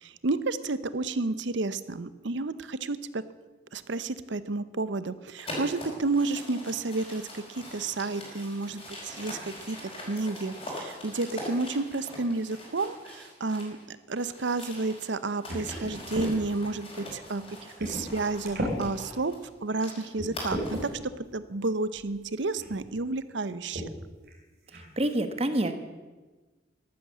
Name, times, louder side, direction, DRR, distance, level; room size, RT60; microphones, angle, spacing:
voice 1, 0.0-3.2 3.7-9.4 9.7-9.8 10.1-19.3 19.6-20.8 21.3-23.8, right 3 dB, 75° right, 14 dB, 0.8 m, -31 dB
sound 1, 5.4-13.8 14.1-20.9, left 1 dB, 30° left, 5.0 m, -42 dB
sound 2, 15.5-16.3 17.1-17.2 17.8-18.1 18.4-18.8 19.5-19.6 20.2-20.9 21.9-22.1 22.6-22.8 23.7-23.9 24.3-24.4 24.7-25.1, equal, 55° right, 3.5 m, -34 dB
voice 2, 24.7-25.7, right 1 dB, 30° right, 8 dB, 1.2 m, -28 dB
13.5 x 12.0 x 7.4 m, 1.3 s
head